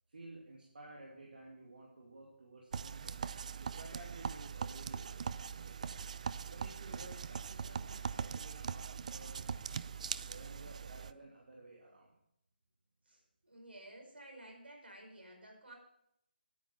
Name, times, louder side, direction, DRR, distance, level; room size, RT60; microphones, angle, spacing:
voice 1, 0.1-3.2 3.6-5.2 5.5-6.0 6.5-9.9 10.3-12.1, right 2 dB, 65° right, -3 dB, 2.6 m, -54 dB
sound 1, 2.7-11.1, right 6 dB, 45° right, 0.4 m, -41 dB
voice 2, 13.1-15.7, right 1 dB, 85° right, 1 dB, 5.2 m, -54 dB
10.0 x 9.3 x 5.8 m, 0.78 s
figure-of-eight pair, 155°, 6 cm